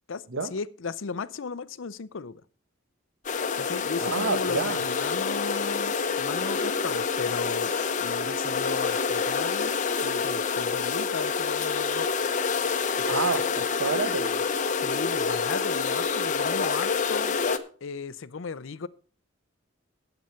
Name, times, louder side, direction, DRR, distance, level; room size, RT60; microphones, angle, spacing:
voice 1, 0.1-2.4 3.6-7.7 8.0-12.1 13.0-13.3 14.7-17.4 17.8-18.9, left 5 dB, 70° left, 0.6 m, -36 dB
sound 1, 3.2-17.6, left 5 dB, 40° left, 0.8 m, -27 dB
voice 2, 4.0-4.8 13.0-14.4, right 4 dB, 75° right, 0.9 m, -29 dB
10.5 x 7.9 x 5.7 m
head